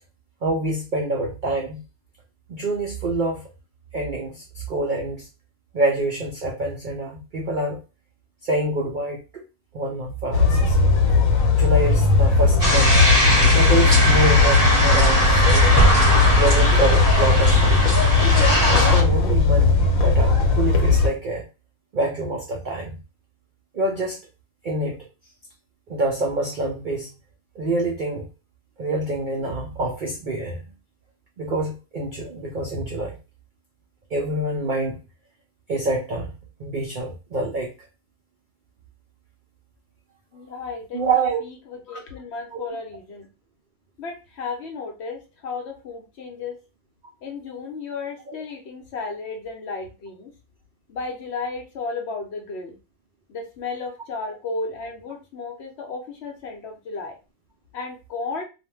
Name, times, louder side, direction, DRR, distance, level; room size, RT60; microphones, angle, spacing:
voice 1, 0.4-1.8 2.5-3.5 3.9-5.3 5.7-7.8 8.4-9.4 9.7-10.8 11.5-12.9 13.5-15.8 16.4-18.0 18.7-19.7 20.0-21.5 21.9-23.0 23.7-24.2 24.6-25.0 25.9-27.1 27.6-28.2 28.8-30.6 31.4-33.2 34.1-35.0 35.7-36.3 36.6-37.7 40.9-41.4 42.5-42.6 48.3-48.4, right 2 dB, 80° right, 0 dB, 0.4 m, -26 dB
sound 1, 10.3-21.1, left 4 dB, 80° left, 1.1 m, -18 dB
sound 2, 12.6-19.0, equal, 15° right, 0.9 m, -19 dB
voice 2, 40.3-41.0 41.7-43.3 44.0-46.6 47.2-50.3 50.9-52.8 53.3-57.2 57.7-58.4, left 4 dB, 60° left, 2 dB, 0.8 m, -33 dB
2.5 x 2.1 x 3.1 m, 0.30 s
omnidirectional pair, 1.5 m